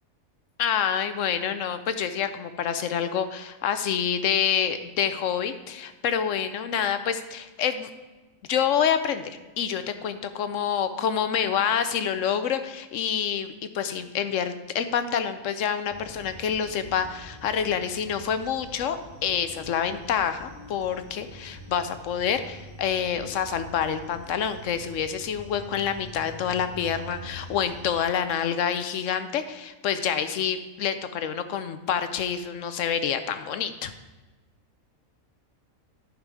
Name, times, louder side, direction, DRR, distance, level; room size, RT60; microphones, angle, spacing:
voice 1, 0.6-7.9 8.5-19.0 19.2-33.9, left 8 dB, 70° left, 10 dB, 1.0 m, -27 dB
sound 1, 15.9-28.0, equal, 80° right, 2.7 m, -45 dB
9.9 x 5.3 x 4.7 m, 1.2 s
omnidirectional pair, 1.4 m